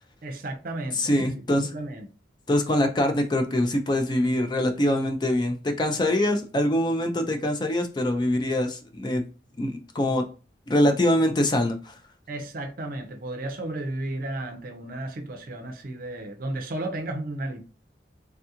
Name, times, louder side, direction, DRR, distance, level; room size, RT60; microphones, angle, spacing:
voice 1, 0.2-1.2 1.6-2.1 12.3-17.6, right 2 dB, 50° right, 0.5 m, -33 dB
voice 2, 0.9-1.7 2.5-9.2 9.6-10.2 10.7-12.0, left 1 dB, 25° left, 0.3 m, -24 dB
3.4 x 2.3 x 2.8 m
head